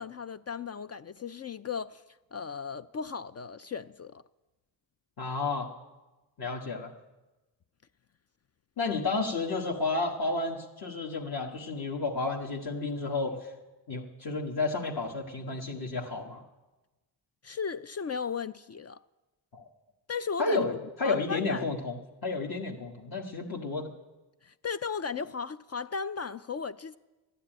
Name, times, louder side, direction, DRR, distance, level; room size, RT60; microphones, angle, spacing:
voice 1, 0.0-4.2 17.4-19.0 20.1-20.7 21.0-21.7 24.4-27.0, left 6 dB, 35° left, 0.4 m, -36 dB
voice 2, 5.2-5.7 6.4-6.9 8.8-13.5 13.9-16.4 19.5-19.6 20.4-20.7 21.0-23.9, left 3 dB, 50° left, 1.5 m, -31 dB
12.5 x 9.9 x 8.9 m
cardioid pair, 70°, 46 cm